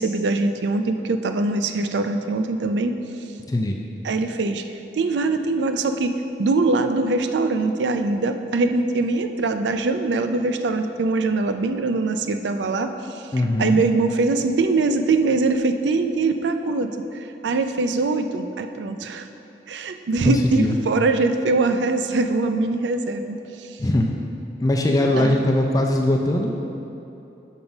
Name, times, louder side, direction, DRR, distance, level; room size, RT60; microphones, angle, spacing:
voice 1, 0.0-2.9 4.0-4.6 4.9-6.1 6.4-13.2 13.6-19.3 19.7-23.8 25.1-25.4, right 3 dB, 75° right, 8 dB, 0.4 m, -22 dB
voice 2, 3.5-3.8 13.3-13.8 20.2-20.8 23.8-24.2 24.6-26.5, left 1 dB, 20° left, 1 dB, 0.3 m, -20 dB
5.5 x 5.2 x 5.9 m, 2.9 s
head